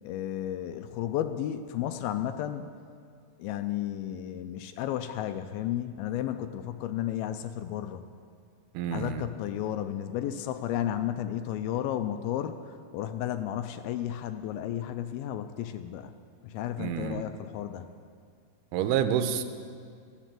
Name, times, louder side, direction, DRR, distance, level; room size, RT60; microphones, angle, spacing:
voice 1, 0.0-2.7 3.4-8.0 8.9-12.6 12.9-16.1 16.4-17.9, left 11 dB, 85° left, 9 dB, 2.2 m, -33 dB
voice 2, 8.8-9.3 16.8-17.2 18.7-19.4, right 9 dB, 85° right, 9 dB, 2.5 m, -28 dB
13.5 x 9.1 x 7.5 m, 2.2 s
omnidirectional pair, 4.7 m